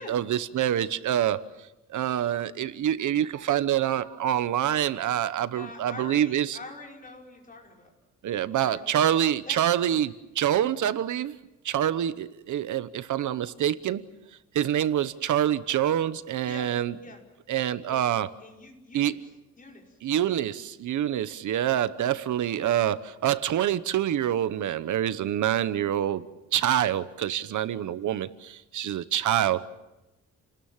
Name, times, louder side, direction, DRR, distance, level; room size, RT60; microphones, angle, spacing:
voice 1, 0.0-1.4 1.9-6.6 8.2-11.3 11.6-14.1 14.5-16.9 17.5-18.3 18.9-19.1 20.0-26.3 26.5-29.6, right 11 dB, 75° right, 1.0 m, -26 dB
voice 2, 5.5-7.9 8.5-9.1 9.4-9.6 13.4-13.5 16.4-16.8 17.0-17.2 17.9-18.0 18.4-19.3 19.6-20.0 22.0-22.8, left 3 dB, 25° left, 5.4 m, -45 dB
30.0 x 20.0 x 7.3 m
wide cardioid pair, 165°, 30 cm